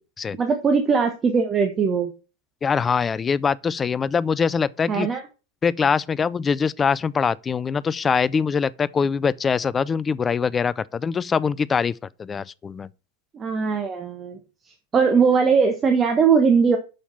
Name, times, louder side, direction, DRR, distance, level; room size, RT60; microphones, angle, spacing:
voice 1, 0.3-2.1 4.9-5.2 13.3-14.4 14.6-16.8, right 5 dB, 20° right, 1.2 m, -20 dB
voice 2, 2.6-5.1 5.6-11.9 12.2-12.9, left 6 dB, 20° left, 0.4 m, -23 dB
7.0 x 6.7 x 5.6 m
figure-of-eight pair, 90°, 0 cm